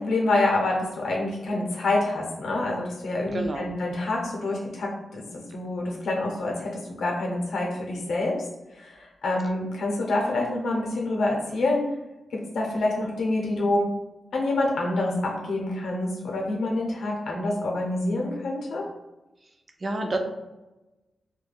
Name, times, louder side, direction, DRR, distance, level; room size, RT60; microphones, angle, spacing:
voice 1, 0.0-5.2 5.5-6.7 7.0-8.3 8.7-11.8 12.3-13.9 14.3-18.8, left 2 dB, 75° left, -1 dB, 0.6 m, -27 dB
voice 2, 3.3-3.7 19.8-20.2, right 2 dB, 30° right, 4 dB, 0.3 m, -28 dB
2.2 x 2.2 x 3.2 m, 1.0 s
wide cardioid pair, 160°, 0 cm